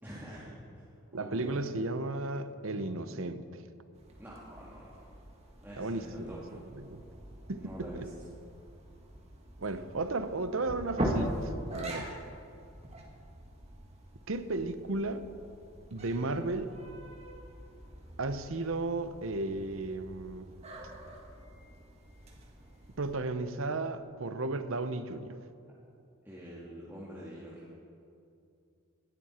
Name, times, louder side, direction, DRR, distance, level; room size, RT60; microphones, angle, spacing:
voice 1, 0.0-0.8 1.2-1.5 4.2-5.1 5.6-6.6 7.6-8.1 26.2-27.7, equal, 10° right, -8 dB, 2.0 m, -46 dB
voice 2, 1.1-3.6 5.8-6.4 6.8-7.0 7.5-8.1 9.6-12.1 14.3-15.2 15.9-16.7 18.2-20.5 23.0-25.4, right 2 dB, 65° right, 10 dB, 0.8 m, -34 dB
sound 1, 3.9-23.1, right 1 dB, 30° right, 1.7 m, -42 dB
19.0 x 12.5 x 4.4 m, 2.5 s
head